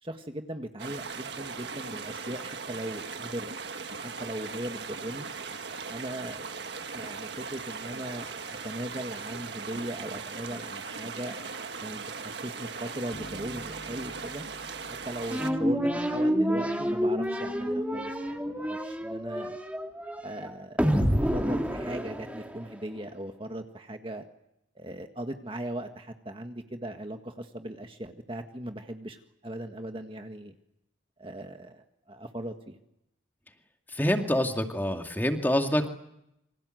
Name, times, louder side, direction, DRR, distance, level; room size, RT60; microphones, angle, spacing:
voice 1, 0.0-3.5 3.9-5.3 5.9-6.4 6.9-11.4 11.8-14.4 14.9-19.6 20.2-20.8 21.2-24.2 24.7-30.5 31.2-32.8, right 1 dB, 30° right, 5 dB, 1.7 m, -38 dB
sound 1, 0.8-15.5, right 5 dB, 65° right, 1.6 m, -39 dB
sound 2, 13.1-16.5, right 1 dB, 40° left, 3.8 m, -49 dB
sound 3, 15.3-22.8, equal, 10° right, 2.6 m, -28 dB
voice 2, 33.9-35.9, left 1 dB, 10° left, 4 dB, 2.4 m, -26 dB
28.5 x 25.5 x 7.9 m, 0.82 s
head